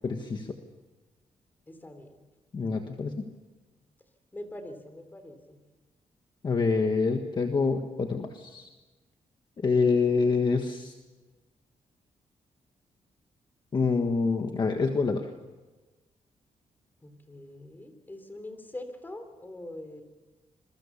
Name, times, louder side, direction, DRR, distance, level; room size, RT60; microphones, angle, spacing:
voice 1, 0.0-0.5 2.5-3.3 6.4-8.7 9.6-10.9 13.7-15.3, left 4 dB, 35° left, 5 dB, 1.6 m, -26 dB
voice 2, 1.7-2.1 4.3-5.6 17.0-20.0, left 1 dB, 15° left, 8 dB, 3.5 m, -43 dB
27.5 x 22.5 x 7.2 m, 1.2 s
wide cardioid pair, 155°, 13 cm